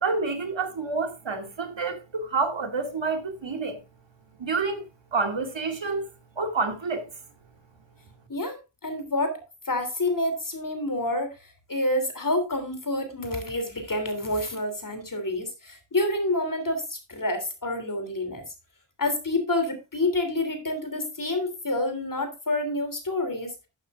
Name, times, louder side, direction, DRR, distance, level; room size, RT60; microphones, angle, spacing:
voice 1, 0.0-3.8 4.4-4.8 5.1-6.1 6.4-7.1, right 4 dB, 65° right, 2.4 m, -28 dB
voice 2, 8.3-9.4 9.7-18.4 19.0-23.5, left 2 dB, 40° left, 3.1 m, -28 dB
12.5 x 9.1 x 2.5 m
wide cardioid pair, 65°, 47 cm